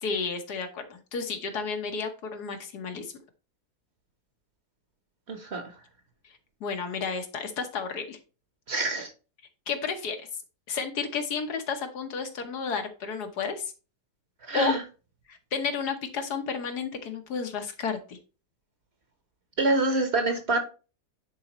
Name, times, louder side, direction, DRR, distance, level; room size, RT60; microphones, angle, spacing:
voice 1, 0.0-3.1 6.6-8.2 9.7-10.3 10.7-13.7 14.5-14.7 15.3-18.2, left 5 dB, 85° left, 5 dB, 1.7 m, -32 dB
voice 2, 5.3-5.6 8.7-9.1 14.4-14.8 19.6-20.6, right 2 dB, 45° right, 6 dB, 1.3 m, -26 dB
10.0 x 4.1 x 3.0 m, 0.34 s
omnidirectional pair, 1.7 m